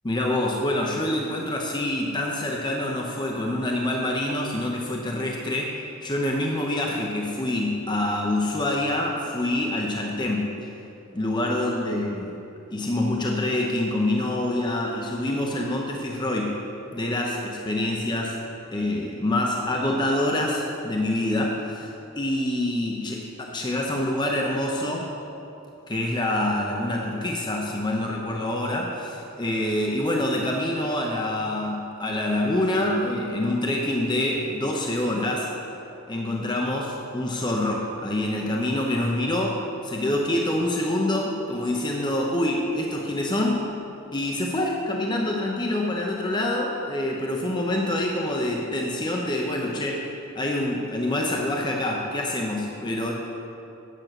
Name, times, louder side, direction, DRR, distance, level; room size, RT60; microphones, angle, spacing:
voice 1, 0.0-5.8 6.0-10.5 11.1-12.3 12.7-16.6 16.9-18.4 18.7-25.1 25.9-35.5 36.1-43.7 44.1-53.1, left 1 dB, 20° left, -1 dB, 0.7 m, -26 dB
9.2 x 6.6 x 5.9 m, 2.8 s
head